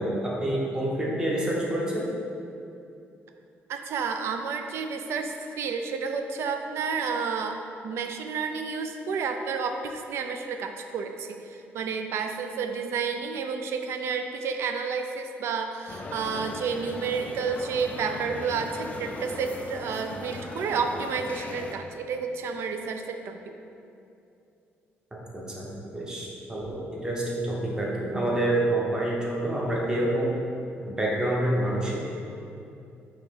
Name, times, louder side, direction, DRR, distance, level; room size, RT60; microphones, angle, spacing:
voice 1, 0.0-2.1 25.3-25.7 25.9-30.4 30.8-32.0, right 1 dB, 15° right, -4 dB, 0.8 m, -27 dB
voice 2, 3.7-23.5, right 5 dB, 70° right, 6 dB, 0.3 m, -31 dB
sound 1, 15.9-21.8, left 2 dB, 35° left, 0.4 m, -38 dB
4.6 x 2.9 x 3.6 m, 2.7 s
cardioid pair, 130°, 5 cm